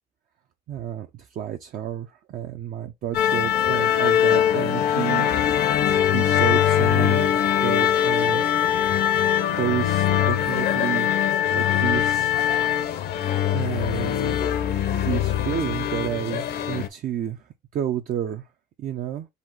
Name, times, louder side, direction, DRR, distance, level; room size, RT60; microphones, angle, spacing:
voice 1, 0.7-5.3 5.6-5.8 6.0-7.3 7.6-8.4 9.6-11.1 11.5-12.4 12.8-13.2 13.5-14.3 14.9-18.5 18.8-19.3, right 10 dB, 55° right, 0.5 m, -30 dB
sound 1, 3.1-16.9, left 10 dB, 70° left, 0.7 m, -22 dB
4.1 x 2.4 x 4.5 m
cardioid pair, 110°, 17 cm